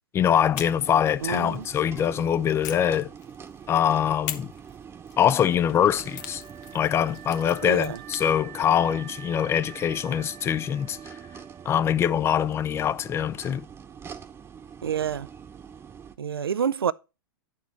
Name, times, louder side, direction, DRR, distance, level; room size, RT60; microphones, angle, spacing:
voice 1, 0.1-3.1 3.7-4.5 5.2-6.4 6.7-11.0 11.7-13.7, left 9 dB, 20° left, 0.4 m, -23 dB
sound 1, 0.5-2.1 2.6-3.7 4.3-8.3, left 11 dB, 50° left, 0.9 m, -42 dB
sound 2, 0.5-16.2, right 7 dB, 20° right, 1.0 m, -45 dB
voice 2, 1.2-1.6 7.6-8.0 14.8-15.3 16.2-16.9, right 8 dB, 85° right, 0.4 m, -27 dB
Wind instrument woodwind instrument, 5.4-12.5, right 11 dB, 40° right, 0.6 m, -47 dB
10.0 x 4.6 x 4.4 m
hypercardioid pair, 105°, 12 cm